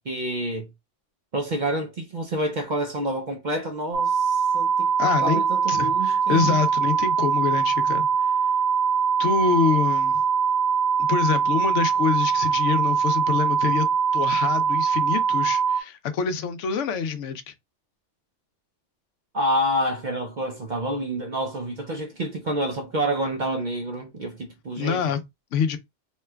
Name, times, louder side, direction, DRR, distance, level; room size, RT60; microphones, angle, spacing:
voice 1, 0.1-0.7 1.3-4.9 5.2-6.6 19.3-25.0, right 1 dB, 50° right, 0.6 m, -28 dB
sound 1, 3.9-15.8, right 6 dB, 85° right, 0.9 m, -22 dB
voice 2, 5.0-5.4 5.7-8.1 9.2-10.2 11.0-13.9 14.1-17.5 24.7-25.2 25.5-25.8, left 6 dB, 75° left, 0.9 m, -25 dB
3.0 x 2.2 x 3.3 m
omnidirectional pair, 1.3 m